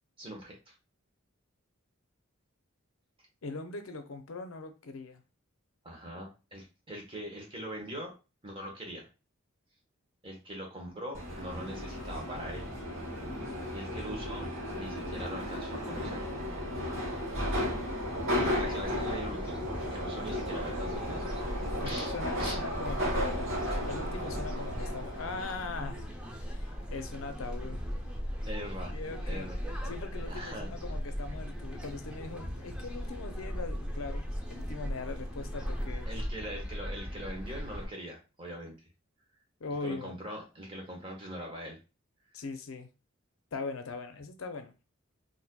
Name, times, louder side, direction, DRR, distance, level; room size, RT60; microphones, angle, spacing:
voice 1, 0.2-0.7 5.8-8.1 8.4-9.1 10.2-12.7 13.7-14.5 14.7-16.2 18.4-19.6 19.9-21.3 21.8-22.6 28.4-29.0 29.2-29.5 30.3-30.7 36.1-38.7 39.8-41.8, equal, 25° right, 1.1 m, -41 dB
voice 2, 3.4-5.2 21.8-26.1 26.5-27.8 28.9-29.5 29.8-36.1 39.6-40.2 42.3-42.9 43.5-44.7, left 3 dB, 80° left, 0.6 m, -40 dB
Subway metro underground, 11.1-25.4, equal, 70° right, 1.2 m, -34 dB
sound 1, 18.3-37.9, equal, 5° right, 0.5 m, -38 dB
4.1 x 2.7 x 2.2 m
head